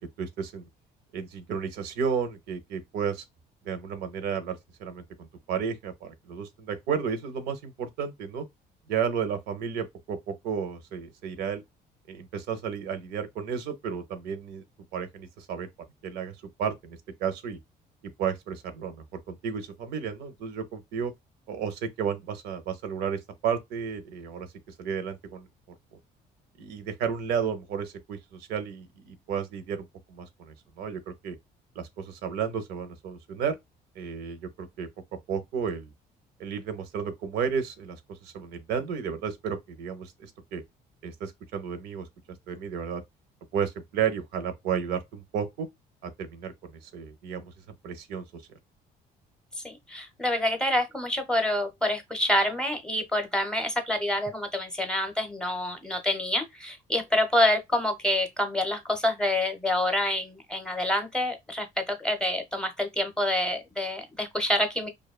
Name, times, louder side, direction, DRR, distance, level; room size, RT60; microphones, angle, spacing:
voice 1, 0.2-0.6 1.1-3.2 3.6-8.4 8.9-11.6 12.1-14.6 14.9-15.7 16.0-16.3 16.6-17.6 18.2-21.1 21.5-24.5 24.8-25.5 26.6-31.4 31.8-33.6 34.0-34.9 35.3-35.9 36.4-38.0 38.2-40.6 41.0-42.0 42.5-43.0 43.5-45.7 46.0-47.5 47.8-48.2, right 7 dB, 85° right, 0.6 m, -32 dB
voice 2, 49.6-64.9, left 1 dB, 5° left, 0.6 m, -27 dB
2.6 x 2.2 x 2.3 m
cardioid pair, 110°, 17 cm